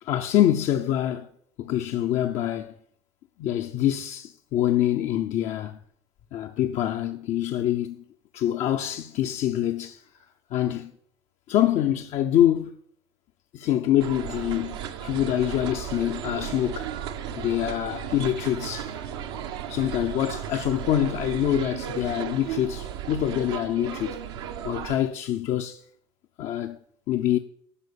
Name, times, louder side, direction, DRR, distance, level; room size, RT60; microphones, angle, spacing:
voice 1, 0.0-1.3 1.6-2.7 3.4-5.8 6.3-8.0 8.3-10.0 10.5-10.9 11.5-12.7 13.5-16.9 17.4-18.9 19.6-24.2 24.6-25.8 26.4-26.8 27.1-27.4, left 11 dB, 55° left, 0.7 m, -25 dB
sound 1, 14.0-25.0, right 9 dB, 80° right, 1.0 m, -35 dB
11.0 x 6.2 x 7.0 m
hypercardioid pair, 75°, 14 cm